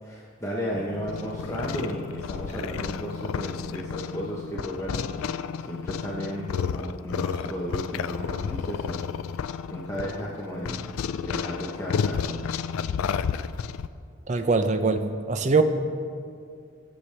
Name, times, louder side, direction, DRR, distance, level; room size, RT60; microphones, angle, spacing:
voice 1, 0.0-9.0 9.3-9.4 9.7-10.9 11.2-12.4, equal, 15° left, -5 dB, 0.8 m, -34 dB
sound 1, 0.7-13.9, left 7 dB, 85° left, 0.3 m, -31 dB
voice 2, 14.3-15.6, right 4 dB, 35° right, 8 dB, 0.5 m, -22 dB
15.5 x 6.6 x 3.3 m, 2.3 s
head